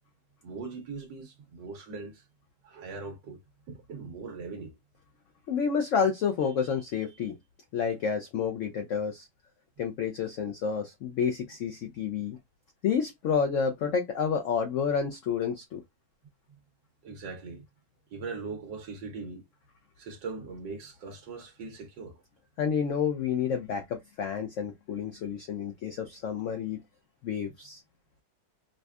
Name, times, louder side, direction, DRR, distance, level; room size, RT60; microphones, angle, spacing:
voice 1, 0.4-2.2 2.6-3.4 3.7-4.7 16.5-16.6 17.0-17.6 18.1-19.5 20.0-22.2 27.4-27.5, right 4 dB, 85° right, 1.5 m, -40 dB
voice 2, 5.5-7.4 7.7-9.3 9.8-12.4 12.8-15.8 22.6-26.8 27.2-27.8, left 6 dB, 85° left, 0.6 m, -29 dB
5.1 x 2.1 x 2.3 m
omnidirectional pair, 1.9 m